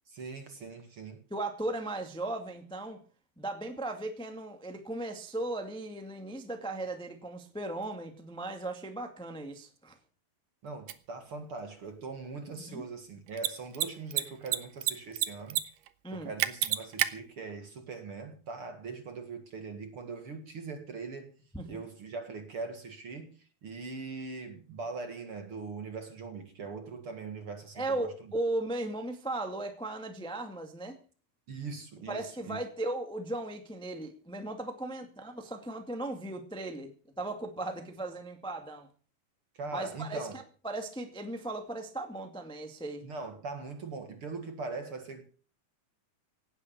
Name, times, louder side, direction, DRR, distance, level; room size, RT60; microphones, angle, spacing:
voice 1, 0.1-1.3 10.6-15.6 16.1-21.3 21.6-28.1 31.5-32.6 39.5-40.4 43.0-45.2, right 4 dB, 45° right, 2.2 m, -41 dB
voice 2, 1.3-3.0 3.4-9.9 12.6-12.8 16.0-16.3 21.5-21.8 27.7-31.0 32.1-36.9 37.2-38.9 39.7-40.3 40.6-43.0, right 2 dB, 5° left, 1.0 m, -37 dB
Mechanisms, 10.9-11.0 13.3-13.5 13.7-13.9 14.1-14.9 15.2-15.6 15.9-16.0 16.4-17.1, right 14 dB, 70° right, 2.4 m, -27 dB
18.0 x 9.7 x 6.8 m
omnidirectional pair, 4.4 m